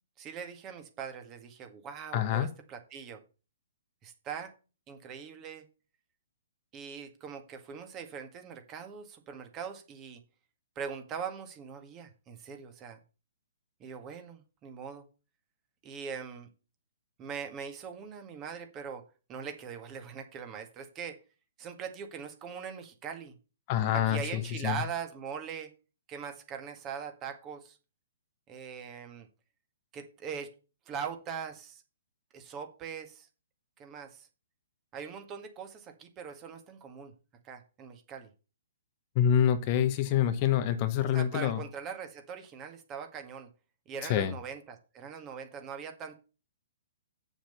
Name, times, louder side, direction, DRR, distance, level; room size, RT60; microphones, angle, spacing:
voice 1, 0.2-3.2 4.0-4.5 4.9-5.6 6.7-10.2 10.8-13.0 13.8-15.1 15.8-16.5 17.2-19.0 19.3-21.2 21.6-23.3 23.9-25.7 26.1-27.8 28.5-29.3 29.9-30.6 30.9-31.8 32.3-33.3 33.8-34.3 34.9-37.1 37.4-38.3 41.0-43.5 43.9-46.2, right 7 dB, 25° right, 6 dB, 1.8 m, -41 dB
voice 2, 2.1-2.5 23.7-24.8 39.1-41.6 44.0-44.3, left 10 dB, 35° left, 10 dB, 1.0 m, -26 dB
7.4 x 7.2 x 6.8 m, 0.34 s
figure-of-eight pair, 120°, 0 cm